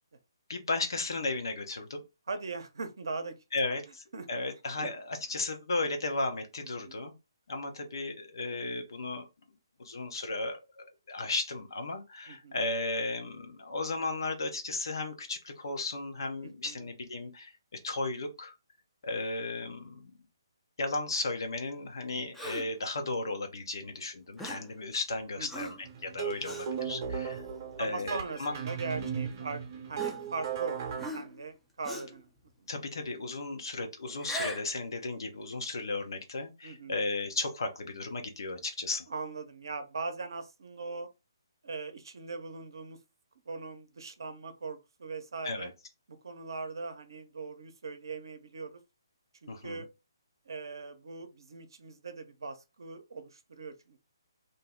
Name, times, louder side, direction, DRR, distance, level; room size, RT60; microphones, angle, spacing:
voice 1, 0.5-2.0 3.5-7.1 7.5-9.2 9.8-17.5 17.8-18.5 19.0-20.1 20.8-27.4 27.8-28.5 32.7-39.1 45.4-45.7 49.5-49.8, left 2 dB, 65° left, 0.8 m, -35 dB
voice 2, 2.3-3.3 4.1-4.3 4.8-4.9 6.9-7.0 12.3-12.6 16.4-16.9 25.4-25.7 27.8-32.3 32.6-32.7 36.6-37.0 39.1-41.1 41.6-43.0 43.5-45.7 46.1-48.8 49.4-49.9 50.5-54.0, right 4 dB, 65° right, 0.7 m, -40 dB
Gasp, 22.3-22.8 24.4-24.7 25.5-25.9 26.4-26.7 27.4-27.6 28.6-28.7 29.9-30.6 31.0-31.4 31.8-32.2 34.1-34.7, equal, 5° left, 0.5 m, -40 dB
sound 1, 25.8-31.1, right 7 dB, 35° right, 0.8 m, -36 dB
2.6 x 2.0 x 3.6 m
figure-of-eight pair, 140°, 2 cm